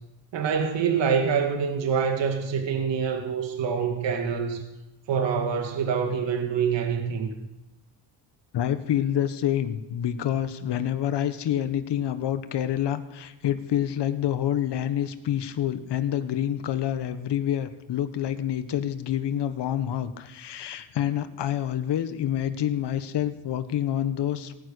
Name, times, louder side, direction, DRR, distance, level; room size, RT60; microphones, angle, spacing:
voice 1, 0.3-4.6 5.1-7.3, right 6 dB, 60° right, 3 dB, 2.3 m, -25 dB
voice 2, 8.5-24.5, left 10 dB, 55° left, 11 dB, 1.5 m, -27 dB
18.0 x 9.6 x 6.5 m, 0.97 s
supercardioid pair, 75°, 49 cm